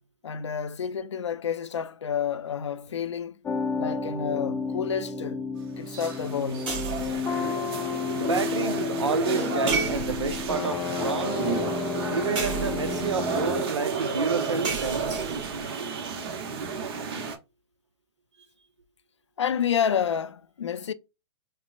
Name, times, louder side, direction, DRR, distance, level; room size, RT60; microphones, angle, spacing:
voice 1, 0.2-3.4 3.7-5.4 5.8-6.7 19.4-20.9, left 8 dB, 80° left, 0.4 m, -29 dB
sound 1, 3.4-13.6, left 5 dB, 15° left, 0.4 m, -31 dB
sound 2, 5.9-17.4, right 5 dB, 55° right, 0.8 m, -32 dB
sound 3, 6.7-7.3 9.7-10.5 12.3-13.1 14.6-15.7, right 6 dB, 30° right, 2.0 m, -32 dB
voice 2, 8.2-11.5 12.1-15.2, right 5 dB, 85° right, 0.6 m, -29 dB
5.3 x 2.1 x 2.4 m
figure-of-eight pair, 110°, 15 cm